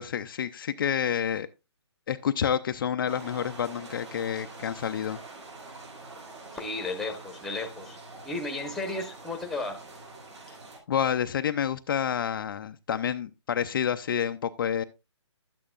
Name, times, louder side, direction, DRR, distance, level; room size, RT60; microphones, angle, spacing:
voice 1, 0.0-1.5 2.1-5.2 10.9-14.8, left 8 dB, 45° left, 8 dB, 0.5 m, -29 dB
sound 1, 3.1-10.8, right 3 dB, 70° right, 6.1 m, -45 dB
voice 2, 6.5-9.8, left 2 dB, ahead, 4 dB, 1.0 m, -34 dB
12.0 x 8.8 x 2.4 m, 0.25 s
hypercardioid pair, 155°, 15 cm